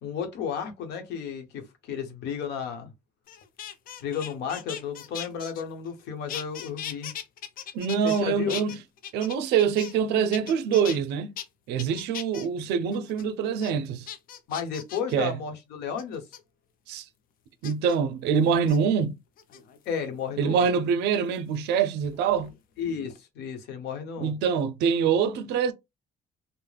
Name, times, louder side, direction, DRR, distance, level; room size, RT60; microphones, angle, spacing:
voice 1, 0.0-2.9 4.0-7.1 8.0-8.6 14.5-16.2 19.9-20.7 22.8-24.4, left 7 dB, 80° left, 0.8 m, -33 dB
sound 1, 3.3-6.0 6.3-8.2 8.5-10.0 10.3-11.0 11.4-11.5 11.8-12.5 12.9-13.2 13.6-13.7 14.1-15.1 16.0-16.4 17.6-18.0 18.6-18.8 19.4-19.9 21.4-22.5 22.8-23.2, left 10 dB, 60° left, 0.5 m, -39 dB
voice 2, 7.7-8.8 9.1-11.3 11.7-14.1 15.1-15.4 16.9-17.1 17.6-19.1 20.4-22.5 24.2-25.7, right 7 dB, 80° right, 0.4 m, -25 dB
3.2 x 2.0 x 2.2 m
cardioid pair, 110°, 17 cm